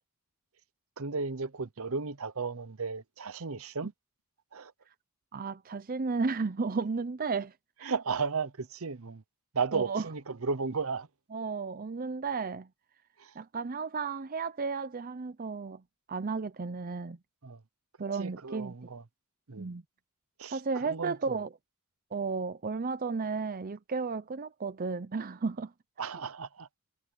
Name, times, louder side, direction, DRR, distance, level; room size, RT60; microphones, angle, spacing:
voice 1, 1.0-3.9 4.5-4.7 7.8-9.2 9.5-11.1 13.2-13.3 17.4-17.6 18.1-19.0 19.5-19.7 20.4-21.4 26.0-26.7, right 5 dB, 65° right, 0.9 m, -34 dB
voice 2, 5.3-7.5 7.8-7.9 9.7-10.0 11.3-12.7 13.4-15.8 16.1-17.2 18.0-18.7 19.6-19.8 20.5-21.5 22.1-25.7, right 4 dB, 40° right, 0.6 m, -33 dB
head